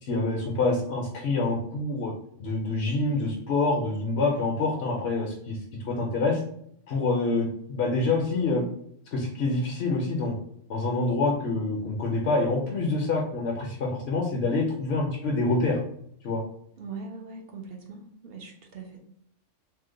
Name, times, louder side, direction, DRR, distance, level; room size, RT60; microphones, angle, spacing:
voice 1, 0.0-2.1 2.4-5.6 5.8-6.4 6.9-8.7 9.1-10.4 10.7-15.8 16.2-16.4, left 3 dB, 65° left, -2 dB, 0.8 m, -26 dB
voice 2, 16.8-19.0, right 4 dB, 60° right, 1 dB, 0.7 m, -41 dB
2.8 x 2.1 x 3.6 m, 0.70 s
omnidirectional pair, 1.3 m